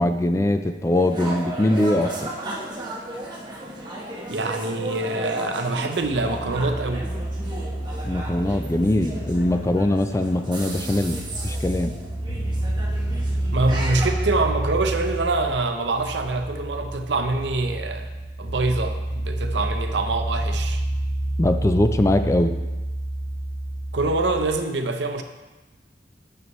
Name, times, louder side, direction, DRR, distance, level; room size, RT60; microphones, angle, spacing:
voice 1, 0.0-2.3 8.0-11.9 21.4-22.5, left 1 dB, 15° left, 8 dB, 0.3 m, -22 dB
sound 1, 0.9-14.1, right 1 dB, 25° right, 1.2 m, -35 dB
voice 2, 4.3-7.1 13.5-18.1 18.4-20.8 23.9-25.2, right 2 dB, 75° right, 6 dB, 0.7 m, -25 dB
sound 2, 6.0-24.5, right 1 dB, 90° left, 2.1 m, -29 dB
9.3 x 6.6 x 3.0 m, 1.2 s
head